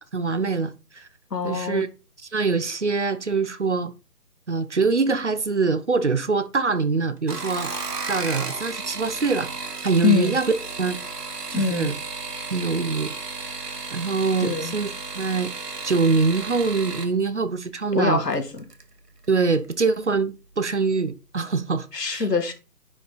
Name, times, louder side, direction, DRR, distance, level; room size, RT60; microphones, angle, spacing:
voice 1, 0.1-1.1 1.4-1.9 2.3-3.9 4.5-7.7 8.1-9.5 9.8-10.5 10.8-11.0 11.5-11.9 12.5-13.2 13.9-15.5 15.8-18.2 19.3-22.2, right 4 dB, 45° right, 0.8 m, -24 dB
voice 2, 1.3-1.9 10.0-10.4 11.5-11.9 14.4-14.8 17.9-18.6 21.9-22.5, left 4 dB, 85° left, 2.1 m, -24 dB
sound 1, 7.2-17.1 18.3-18.8 19.2-19.7 19.9-20.0, right 4 dB, 80° right, 1.8 m, -34 dB
9.9 x 5.2 x 4.1 m
figure-of-eight pair, 170°, 47 cm